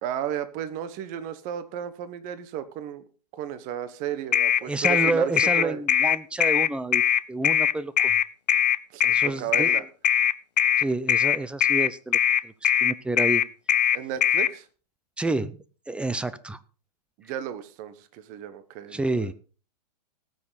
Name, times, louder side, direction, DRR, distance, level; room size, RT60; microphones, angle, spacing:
voice 1, 0.0-3.0 3.3-5.8 8.9-9.8 13.9-14.7 17.2-19.3, right 10 dB, 40° right, 13 dB, 1.3 m, -34 dB
sound 1, 4.3-14.5, left 9 dB, 80° left, 0.6 m, -21 dB
voice 2, 4.6-7.0 7.3-8.1 9.0-9.7 10.8-12.2 12.4-13.4 15.2-15.6 15.9-16.6 18.9-19.3, right 2 dB, 5° right, 16 dB, 0.6 m, -29 dB
19.0 x 6.6 x 4.1 m, 0.37 s
hypercardioid pair, 115°, 21 cm